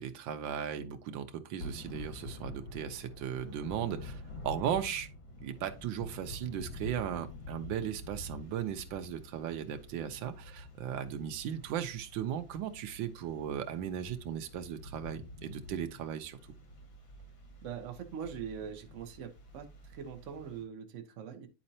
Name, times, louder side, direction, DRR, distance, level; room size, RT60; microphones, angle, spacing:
voice 1, 0.0-5.1 5.4-16.4, right 9 dB, 80° right, 1.5 m, -37 dB
Thunder / Rain, 1.6-20.6, left 2 dB, 85° left, 2.5 m, -47 dB
voice 2, 17.6-21.5, right 7 dB, 50° right, 1.1 m, -42 dB
9.9 x 4.3 x 2.7 m
omnidirectional pair, 2.1 m